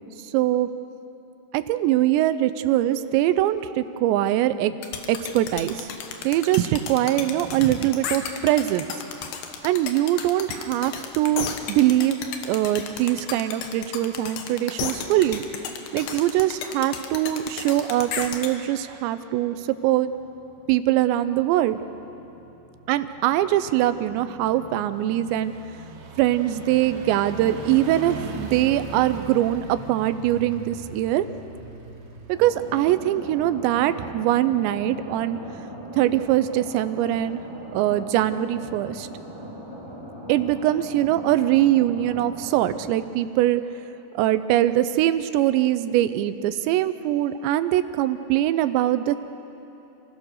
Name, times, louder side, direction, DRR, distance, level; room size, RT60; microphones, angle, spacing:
voice 1, 0.3-0.7 1.5-4.8 5.1-5.9 6.2-8.9 9.6-12.2 12.5-15.4 15.9-20.1 20.7-21.8 22.9-25.5 26.2-31.3 32.3-35.4 36.0-37.4 37.7-39.1 40.3-43.6 44.1-49.2, right 13 dB, 85° right, 12 dB, 3.0 m, -22 dB
sound 1, 4.8-18.5, left 7 dB, 70° left, 3.1 m, -33 dB
sound 2, 17.8-34.0 34.4-34.5, right 3 dB, 70° right, 3.8 m, -41 dB
sound 3, 32.3-42.9, equal, 5° right, 2.5 m, -39 dB
28.0 x 16.0 x 6.5 m, 2.9 s
omnidirectional pair, 5.0 m